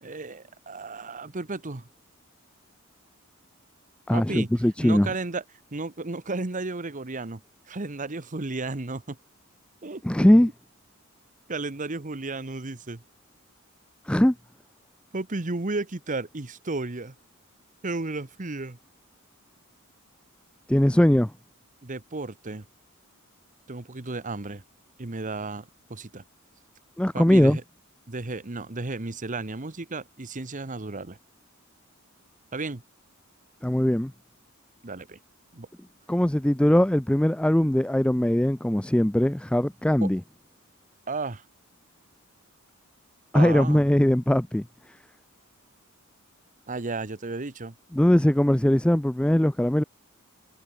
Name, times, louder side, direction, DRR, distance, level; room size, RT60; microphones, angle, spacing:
voice 1, 0.0-1.9 4.1-4.5 4.8-5.4 5.7-7.4 7.7-9.2 9.8-10.3 11.5-13.0 15.1-17.1 17.8-18.8 21.8-22.6 23.7-24.6 25.0-26.2 27.1-27.6 28.1-31.2 32.5-32.8 34.8-35.2 35.5-35.7 40.0-40.1 41.1-41.4 43.3-43.9 46.7-47.7, right 3 dB, 40° right, 1.2 m, -33 dB
voice 2, 4.1-5.1 10.0-10.5 14.1-14.3 20.7-21.3 27.0-27.6 33.6-34.1 36.1-40.2 43.3-44.6 47.9-49.8, left 1 dB, 5° left, 0.4 m, -20 dB
head